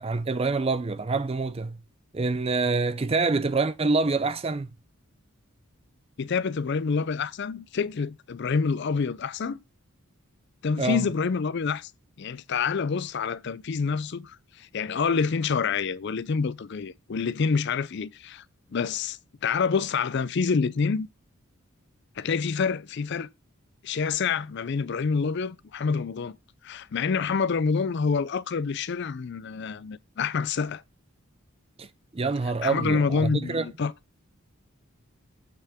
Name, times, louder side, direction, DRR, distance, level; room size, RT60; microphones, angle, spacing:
voice 1, 0.0-1.8 2.1-4.7 10.8-11.0 31.8-31.9 32.1-33.7, right 3 dB, 25° right, 0.4 m, -26 dB
voice 2, 6.2-9.6 10.6-11.9 12.2-18.4 18.7-21.1 22.2-23.3 23.8-26.4 26.6-30.8 32.6-33.9, left 5 dB, 50° left, 0.4 m, -27 dB
7.9 x 5.6 x 3.5 m
head